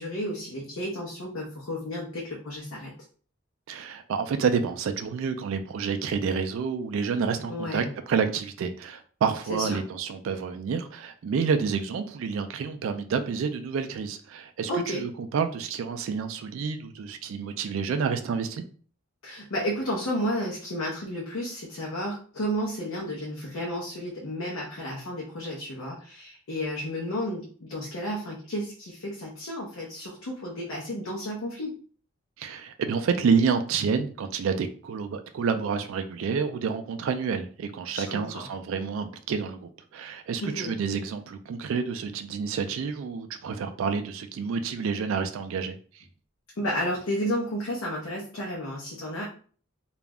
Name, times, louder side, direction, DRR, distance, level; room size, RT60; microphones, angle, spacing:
voice 1, 0.0-2.9 7.5-7.9 9.5-9.8 14.7-15.0 19.2-31.7 37.9-38.5 40.4-40.8 46.6-49.3, equal, 75° left, -3 dB, 0.6 m, -32 dB
voice 2, 3.7-18.6 32.4-45.8, right 5 dB, 70° right, 7 dB, 0.3 m, -29 dB
2.4 x 2.1 x 3.4 m, 0.43 s
head